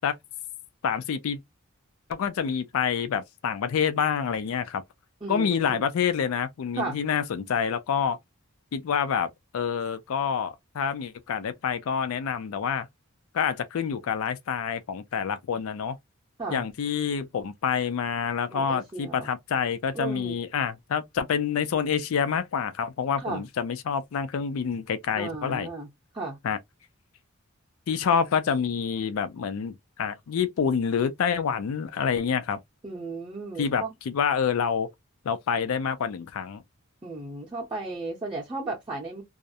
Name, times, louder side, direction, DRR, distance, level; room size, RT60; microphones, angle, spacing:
voice 1, 0.8-1.4 2.1-4.8 5.3-8.2 8.7-12.9 13.3-16.0 16.5-25.7 26.4-26.6 27.9-32.6 33.6-34.9 35.2-36.6, left 7 dB, 75° left, 0.4 m, -27 dB
voice 2, 5.2-5.8 6.8-7.0 16.4-16.7 18.5-19.3 19.9-20.4 23.2-23.4 25.2-25.9 26.1-26.4 32.8-33.9 37.0-39.2, right 3 dB, 20° right, 0.6 m, -34 dB
2.3 x 2.0 x 2.6 m
head